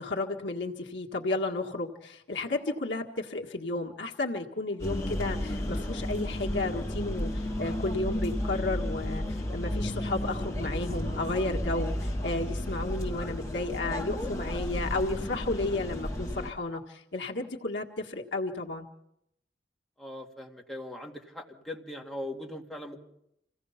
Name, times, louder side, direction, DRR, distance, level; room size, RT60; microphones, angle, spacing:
voice 1, 0.0-18.9, left 2 dB, 85° left, 0 dB, 1.7 m, -33 dB
sound 1, 4.8-16.5, left 1 dB, 20° left, 2.8 m, -33 dB
voice 2, 20.0-23.0, left 1 dB, ahead, 0 dB, 2.2 m, -40 dB
27.0 x 16.5 x 5.8 m, 0.79 s
head